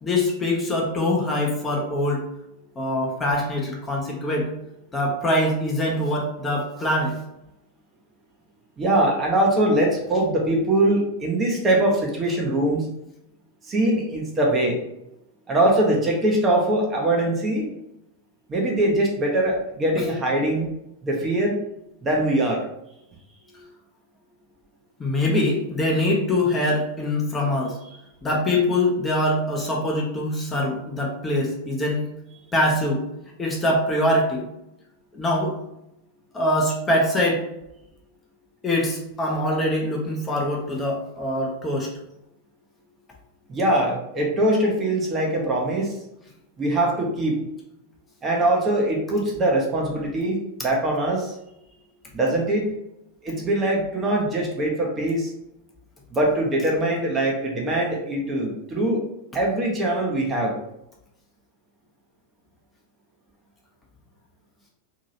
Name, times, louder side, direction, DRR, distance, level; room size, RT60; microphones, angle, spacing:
voice 1, 0.0-2.3 2.8-4.5 4.9-7.2 25.0-27.8 28.2-32.1 32.5-33.0 33.4-34.4 35.1-35.6 36.3-37.4 38.6-41.9, left 1 dB, 15° left, -2 dB, 0.7 m, -23 dB
voice 2, 8.8-12.9 13.6-14.8 15.5-17.7 18.5-20.7 21.0-21.6 22.0-22.6 23.5-23.7 43.5-46.0 46.6-47.4 48.2-51.3 52.1-52.7 53.2-55.3 56.1-59.1 59.3-60.6, right 1 dB, 20° right, -1 dB, 0.7 m, -22 dB
2.8 x 2.8 x 2.6 m, 0.84 s
figure-of-eight pair, 90°, 0 cm